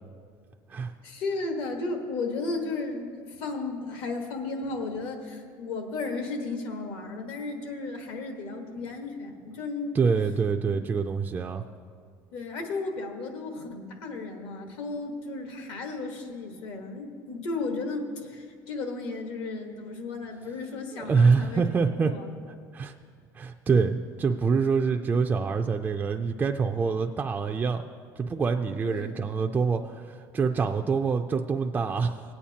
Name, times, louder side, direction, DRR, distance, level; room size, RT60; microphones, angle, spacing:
voice 1, 1.0-9.9 10.7-10.8 12.3-22.4 28.8-29.2, left 3 dB, 65° left, 4 dB, 1.4 m, -34 dB
voice 2, 9.9-11.6 20.9-22.1 22.7-22.9 23.4-27.8 28.2-32.2, right 5 dB, 20° right, 3 dB, 0.3 m, -25 dB
18.5 x 8.6 x 2.8 m, 2.1 s
cardioid pair, 135°, 9 cm